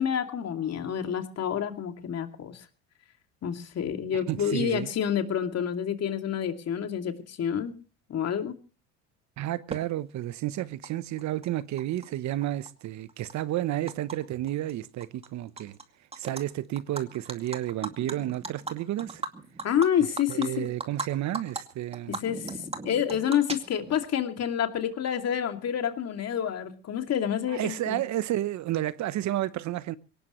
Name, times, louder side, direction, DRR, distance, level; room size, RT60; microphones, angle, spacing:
voice 1, 0.0-2.6 3.4-7.7 8.1-8.6 19.6-20.7 22.1-22.5 22.8-28.0, left 9 dB, 45° left, 2.5 m, -28 dB
voice 2, 4.1-4.9 9.4-15.8 16.2-19.2 20.3-22.2 27.5-30.0, right 14 dB, 50° right, 0.9 m, -31 dB
Animal, 9.7-9.8 10.8-10.9 11.2-12.1 12.4-14.2 14.5-14.7 15.0-15.8 16.1-16.4 16.8-21.1 21.3-21.6 21.9-24.0, right 3 dB, 15° right, 2.3 m, -37 dB
22.5 x 18.5 x 3.1 m
supercardioid pair, 90°, 36 cm